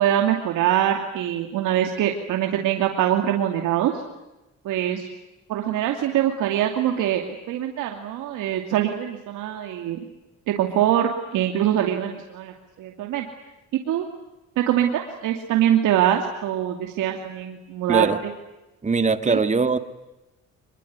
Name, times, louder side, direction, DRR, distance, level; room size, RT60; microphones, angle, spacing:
voice 1, 0.0-3.9 4.6-5.1 5.5-10.0 10.5-12.5 12.8-13.3 13.7-14.0 14.6-18.1 19.3-19.4, right 11 dB, 90° right, 3 dB, 2.7 m, -23 dB
voice 2, 18.8-19.8, right 4 dB, 25° right, 10 dB, 2.2 m, -21 dB
25.5 x 22.0 x 9.5 m, 0.99 s
cardioid pair, 90°, 30 cm